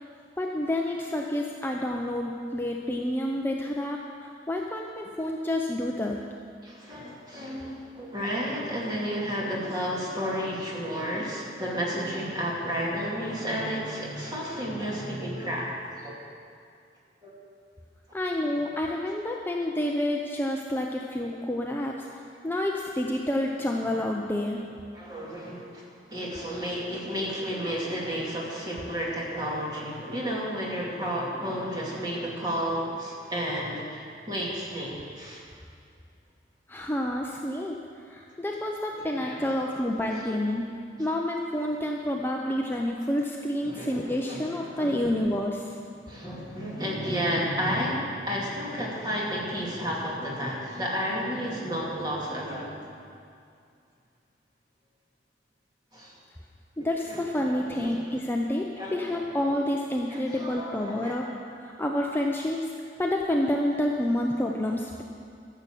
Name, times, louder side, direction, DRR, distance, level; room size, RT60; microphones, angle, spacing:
voice 1, 0.4-6.2 18.1-24.6 36.7-37.8 38.1-40.7 41.0-45.7 56.8-61.3 61.5-62.6 63.0-65.0, left 1 dB, 10° left, 0 dB, 0.6 m, -29 dB
voice 2, 6.6-15.7 16.0-16.2 17.2-17.3 24.9-35.4 38.9-39.4 43.7-45.1 46.1-52.8 55.9-56.1 56.8-57.8 58.7-59.2 60.1-61.2, equal, 25° right, -4 dB, 2.5 m, -32 dB
13.0 x 6.9 x 7.6 m, 2.3 s
head